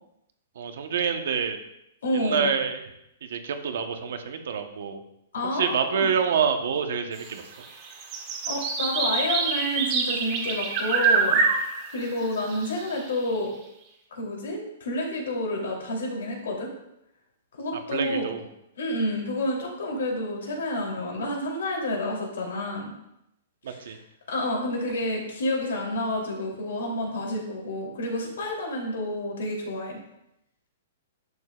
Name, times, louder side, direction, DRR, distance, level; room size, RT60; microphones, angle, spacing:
voice 1, 0.6-1.6 2.1-2.8 3.2-5.0 5.5-7.4 17.9-18.4 23.6-24.0, right 6 dB, 60° right, 6 dB, 1.0 m, -27 dB
voice 2, 2.0-2.5 5.3-6.1 8.5-11.4 11.9-13.5 14.1-16.7 17.6-18.3 18.8-22.9 23.7-23.9 24.3-30.0, left 1 dB, 80° left, -1 dB, 3.1 m, -29 dB
sound 1, 7.2-7.3 7.6-13.2, right 5 dB, 25° right, 1.4 m, -25 dB
11.0 x 7.0 x 2.4 m, 0.81 s
hypercardioid pair, 175°, 0 cm